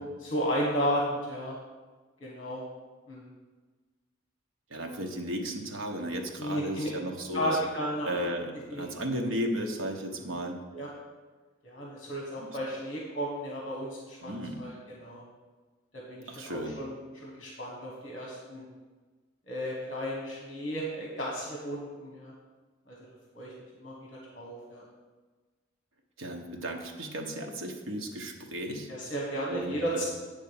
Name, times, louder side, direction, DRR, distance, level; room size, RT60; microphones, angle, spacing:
voice 1, 0.2-1.6 2.2-2.6 3.1-3.3 6.4-6.9 7.3-8.1 8.7-8.9 10.7-10.9 11.6-14.3 14.6-15.2 15.9-16.9 17.2-18.7 19.5-22.3 22.9-23.0 23.3-23.5 23.8-24.1 24.3-24.8 28.9-30.1, equal, 40° left, -3 dB, 1.4 m, -33 dB
voice 2, 4.7-7.6 8.0-10.6 12.4-12.5 14.2-14.6 16.3-16.8 26.2-28.9 29.5-30.0, right 1 dB, 85° right, 2 dB, 1.1 m, -34 dB
9.5 x 3.6 x 7.1 m, 1.3 s
head